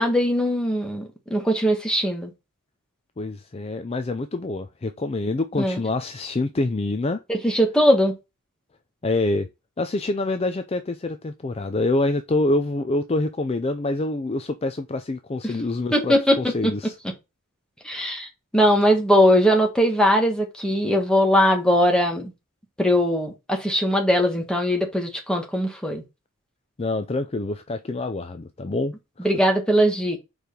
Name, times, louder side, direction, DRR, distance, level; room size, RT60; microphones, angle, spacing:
voice 1, 0.0-2.3 5.6-5.8 7.3-8.1 15.9-16.5 17.8-18.3 18.5-22.3 22.8-26.0 29.2-30.2, equal, 5° left, 1.3 m, -20 dB
voice 2, 3.2-7.2 9.0-9.5 9.8-17.0 17.9-18.1 26.8-29.3, left 2 dB, 25° left, 0.4 m, -26 dB
4.9 x 4.6 x 5.2 m
head